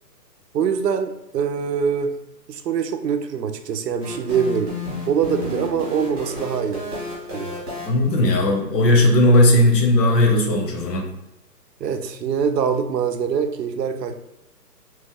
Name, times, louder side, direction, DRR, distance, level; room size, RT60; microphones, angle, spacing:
voice 1, 0.5-2.1 2.5-4.7 5.1-6.8 7.3-7.5 11.8-14.1, right 7 dB, 75° right, 8 dB, 0.6 m, -23 dB
sound 1, 4.0-8.6, left 2 dB, 15° right, 0.7 m, -32 dB
voice 2, 7.8-11.1, left 1 dB, 75° left, 1 dB, 1.0 m, -17 dB
3.1 x 2.1 x 3.4 m, 0.89 s
hypercardioid pair, 160°, 50 cm